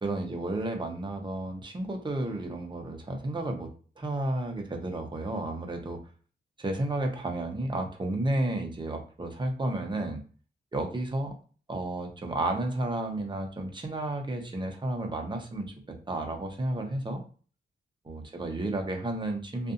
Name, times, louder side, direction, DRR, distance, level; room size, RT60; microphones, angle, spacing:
voice 1, 0.0-3.7 4.0-6.0 6.6-10.2 10.7-11.3 11.7-17.2 18.0-19.7, right 1 dB, 25° right, 3 dB, 0.8 m, -32 dB
2.6 x 2.5 x 2.5 m, 0.40 s
cardioid pair, 65°, 18 cm